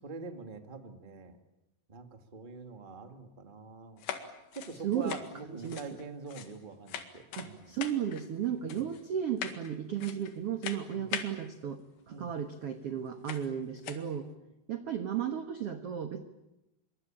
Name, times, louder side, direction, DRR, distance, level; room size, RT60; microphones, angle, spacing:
voice 1, 0.0-1.4 1.9-4.0 4.5-7.7 8.7-8.9 10.9-11.1 12.1-12.3 14.2-14.4, right 4 dB, 35° right, 7 dB, 0.7 m, -45 dB
sound 1, 4.0-6.6 6.9-7.5 7.8-8.3 8.7-9.0 9.4-9.7 10.0-10.4 10.6-11.4 12.5-12.6 13.3-13.5 13.8-14.1, left 9 dB, 90° left, 4.1 m, -41 dB
voice 2, 4.8-5.2 5.4-5.9 7.4-14.3 14.7-16.2, right 9 dB, 75° right, 8 dB, 1.3 m, -34 dB
26.0 x 23.5 x 8.7 m, 0.92 s
omnidirectional pair, 4.7 m